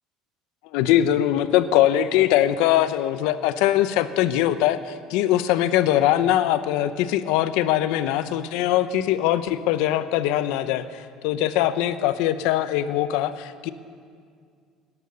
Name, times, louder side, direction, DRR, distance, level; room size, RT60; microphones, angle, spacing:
voice 1, 0.7-13.7, left 12 dB, 80° left, 12 dB, 0.7 m, -22 dB
17.5 x 11.0 x 6.9 m, 2.1 s
cardioid pair, 150°, 0 cm